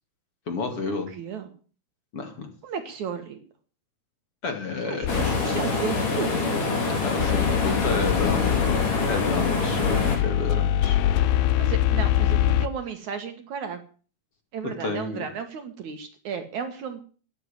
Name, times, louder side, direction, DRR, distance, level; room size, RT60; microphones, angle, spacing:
voice 1, 0.5-1.1 2.1-2.5 4.4-5.1 7.0-11.0 14.8-15.2, left 4 dB, 40° left, 5 dB, 2.9 m, -30 dB
voice 2, 1.1-1.5 2.6-3.4 4.8-6.6 11.6-13.8 14.5-17.0, right 6 dB, 60° right, 8 dB, 2.5 m, -34 dB
sound 1, 5.0-5.8 7.2-12.7, left 12 dB, 80° left, 2.6 m, -24 dB
sound 2, 5.1-10.2, left 3 dB, 60° left, 5.5 m, -25 dB
13.0 x 11.0 x 8.9 m, 0.41 s
omnidirectional pair, 4.3 m